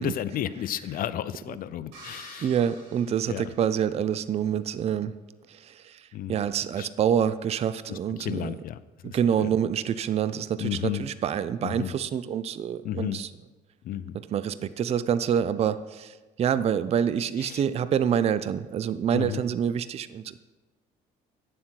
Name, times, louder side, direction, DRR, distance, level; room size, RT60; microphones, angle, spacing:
voice 1, 0.0-2.5 3.3-3.4 6.1-6.3 6.8-6.9 7.9-8.8 9.0-9.5 10.6-11.0 11.6-11.9 12.8-13.2 13.8-14.2 17.4-17.6 19.1-19.4, left 11 dB, 60° left, 15 dB, 0.4 m, -32 dB
sound 1, 1.9-4.1, right 1 dB, 90° right, 3.7 m, -48 dB
voice 2, 2.4-5.1 5.5-8.6 9.0-13.3 14.1-20.4, right 8 dB, 40° right, 14 dB, 0.4 m, -27 dB
9.9 x 7.5 x 4.5 m, 1.2 s
cardioid pair, 110°, 17 cm